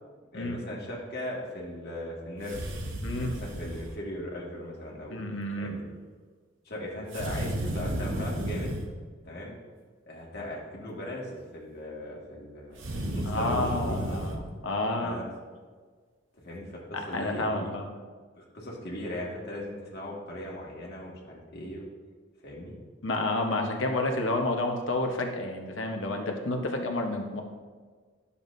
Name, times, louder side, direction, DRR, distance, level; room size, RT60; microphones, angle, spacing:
voice 1, 0.3-2.6 3.2-5.2 5.6-5.8 6.7-8.7 9.2-9.5 10.1-14.2 15.0-15.3 16.4-17.7 18.4-21.9 22.4-22.7, left 1 dB, 55° left, -4 dB, 1.9 m, -38 dB
sound 1, 2.4-3.9 7.1-8.9 12.7-14.4, right 1 dB, 70° right, 1.0 m, -33 dB
voice 2, 3.0-3.3 5.1-5.7 13.3-15.2 17.1-17.8 23.0-27.4, left 2 dB, 70° left, 3 dB, 1.0 m, -30 dB
10.5 x 7.0 x 2.7 m, 1.5 s
head